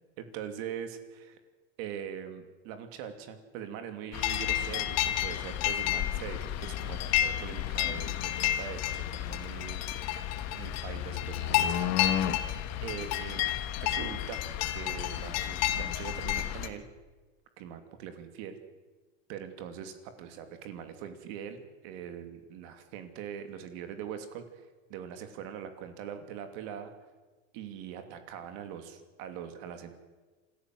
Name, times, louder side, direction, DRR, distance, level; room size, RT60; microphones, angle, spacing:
voice 1, 0.2-1.4 1.8-9.8 10.5-12.3 12.8-13.4 13.8-14.4 14.7-16.9 17.6-18.6 19.3-24.6 24.9-26.9 27.5-29.9, right 8 dB, 60° right, 8 dB, 2.8 m, -42 dB
sound 1, 4.1-16.7, left 12 dB, 45° left, 1.8 m, -31 dB
27.0 x 14.5 x 7.8 m, 1.3 s
supercardioid pair, 125°, 35 cm